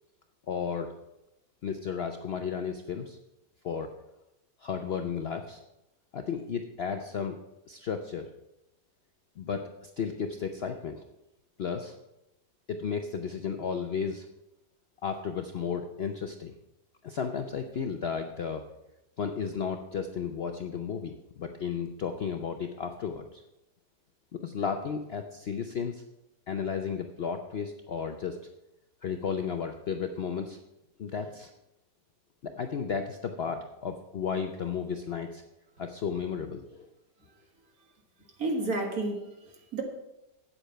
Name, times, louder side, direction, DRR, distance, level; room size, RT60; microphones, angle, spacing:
voice 1, 0.5-0.9 1.6-3.2 3.6-3.9 4.6-5.6 6.1-7.4 7.7-8.3 9.4-11.0 11.6-11.9 12.7-14.3 15.0-16.5 17.0-18.6 19.2-23.4 24.3-26.0 26.5-28.4 29.0-30.6 31.0-31.5 32.4-35.4 35.8-36.9, left 6 dB, 90° left, 6 dB, 0.5 m, -33 dB
voice 2, 38.4-39.8, right 2 dB, 55° right, 2 dB, 2.0 m, -31 dB
8.7 x 8.1 x 5.6 m, 0.92 s
omnidirectional pair, 1.9 m